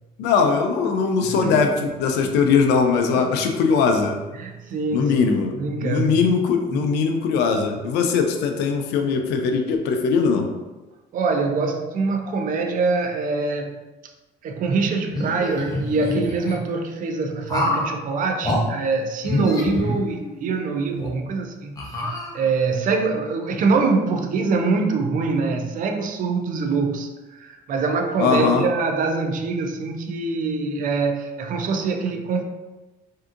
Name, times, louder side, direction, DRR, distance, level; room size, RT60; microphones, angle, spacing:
voice 1, 0.2-4.2 4.9-5.5 5.8-10.5 28.2-28.6, left 5 dB, 85° left, 4 dB, 0.5 m, -20 dB
voice 2, 1.4-1.7 2.2-2.3 3.1-3.3 4.3-6.3 6.7-6.9 11.1-13.8 14.4-21.8 22.3-32.4, right 4 dB, 50° right, 4 dB, 0.4 m, -24 dB
sound 1, 15.1-16.6 17.5-17.9 18.4-18.6 19.2-20.5 21.0-21.1 21.8-22.7, left 1 dB, 20° left, 0.7 m, -26 dB
3.4 x 2.7 x 2.4 m, 1.1 s
cardioid pair, 110°, 17 cm